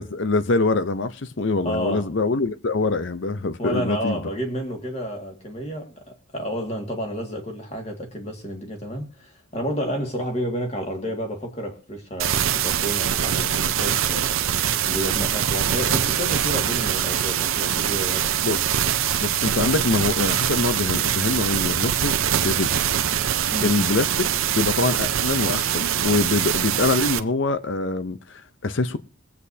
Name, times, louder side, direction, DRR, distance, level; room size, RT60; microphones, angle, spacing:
voice 1, 0.0-4.2 18.4-18.6 19.2-22.2 22.4-22.7 23.6-24.3 24.6-29.0, left 3 dB, 60° left, 0.7 m, -24 dB
voice 2, 1.6-2.1 3.6-14.4 14.8-18.6 23.5-23.8, equal, 30° left, 2.0 m, -30 dB
sound 1, 12.2-27.2, right 9 dB, 75° right, 0.7 m, -23 dB
22.5 x 8.3 x 2.8 m
head